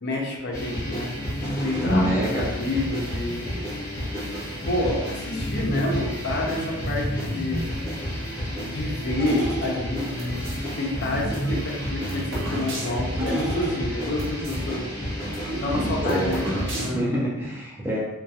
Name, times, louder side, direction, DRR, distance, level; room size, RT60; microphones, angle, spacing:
voice 1, 0.0-1.1 1.6-3.5 4.6-7.6 8.6-14.9 15.6-17.0, left 2 dB, 50° left, -1 dB, 0.5 m, -29 dB
sound 1, 0.5-16.9, equal, 15° left, 0.8 m, -30 dB
voice 2, 1.8-2.5 15.7-16.6 16.9-18.0, equal, 10° right, -5 dB, 0.4 m, -26 dB
sound 2, 9.2-10.6 11.2-14.6 14.9-15.0 15.2-17.2, right 1 dB, 60° right, 0.6 m, -33 dB
2.3 x 2.2 x 2.7 m, 0.98 s
head